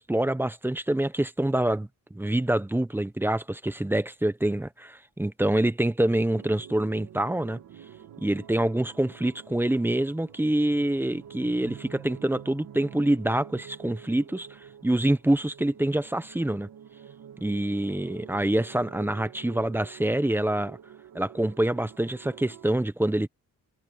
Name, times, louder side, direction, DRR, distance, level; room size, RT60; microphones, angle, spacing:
voice 1, 0.0-7.6 8.2-14.5 14.8-16.7 17.4-20.8 21.1-23.3, right 1 dB, 5° right, 0.7 m, -26 dB
sound 1, 6.3-22.8, right 9 dB, 75° right, 2.3 m, -48 dB
wide cardioid pair, 155°, 35 cm